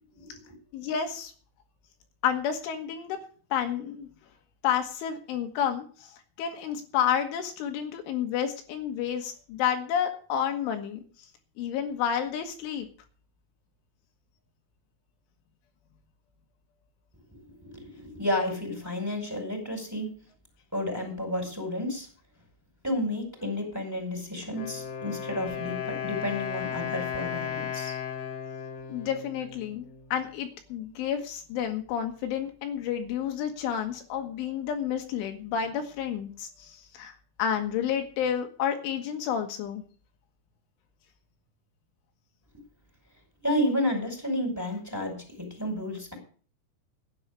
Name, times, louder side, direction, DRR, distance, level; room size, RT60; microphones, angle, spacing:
voice 1, 0.1-0.6 17.3-20.2 20.7-22.1 22.8-27.9 43.4-46.1, left 1 dB, 5° right, 3 dB, 4.4 m, -31 dB
voice 2, 0.7-1.3 2.2-3.2 3.5-4.1 4.6-11.1 11.6-12.9 28.9-29.9 30.1-37.1 37.4-39.8, left 8 dB, 80° left, 5 dB, 3.8 m, -30 dB
Wind instrument woodwind instrument, 24.4-30.2, left 8 dB, 55° left, 3.3 m, -35 dB
13.0 x 9.7 x 6.7 m, 0.41 s
omnidirectional pair, 5.7 m